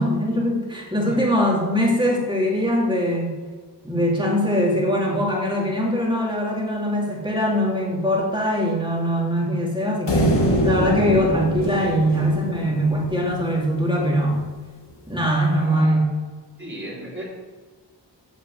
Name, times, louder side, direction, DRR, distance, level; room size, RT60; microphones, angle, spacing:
voice 1, 0.0-3.3 3.8-14.4 15.1-16.1, equal, 10° right, -3 dB, 3.1 m, -22 dB
sound 1, 10.1-13.5, equal, 85° left, 1.7 m, -24 dB
voice 2, 15.5-15.9 16.6-17.2, right 1 dB, 30° right, -5 dB, 3.7 m, -35 dB
8.4 x 6.7 x 8.0 m, 1.5 s
wide cardioid pair, 60°, 41 cm